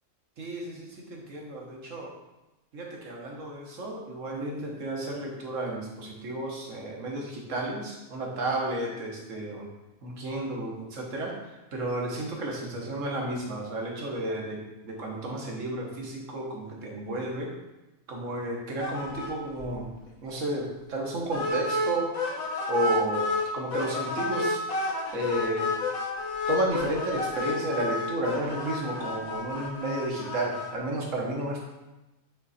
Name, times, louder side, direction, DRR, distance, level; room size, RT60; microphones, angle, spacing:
voice 1, 0.4-2.1 2.7-9.6 10.0-11.3 11.7-17.5 18.1-19.9 20.2-22.1 22.7-23.3 23.5-24.6 25.1-25.7 26.5-31.6, right 1 dB, 65° right, -1 dB, 1.7 m, -32 dB
sound 1, 18.8-19.3 19.6-19.7 20.1-20.2 21.3-23.4 23.7-30.7, left 2 dB, 85° left, 1.5 m, -30 dB
8.7 x 3.9 x 4.2 m, 1.0 s
omnidirectional pair, 1.4 m